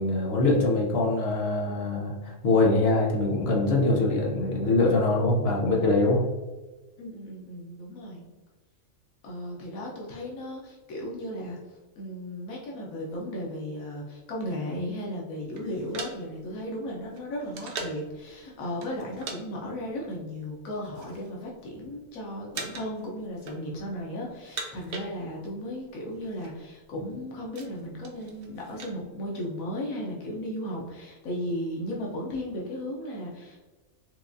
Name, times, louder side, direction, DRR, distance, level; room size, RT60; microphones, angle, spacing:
voice 1, 0.0-6.2, left 2 dB, 55° left, -1 dB, 0.8 m, -23 dB
voice 2, 7.0-8.2 9.2-11.6 12.0-33.6, equal, 85° left, -2 dB, 1.2 m, -35 dB
sound 1, 15.5-18.1 18.8-19.4 19.7-19.9 20.6-21.3 21.6-22.1 22.5-23.0 23.3-24.0 24.3-25.6 25.9-26.0 26.2-26.5 27.0-29.0, right 4 dB, 60° right, 0.6 m, -40 dB
4.5 x 2.3 x 2.5 m, 1.2 s
omnidirectional pair, 1.4 m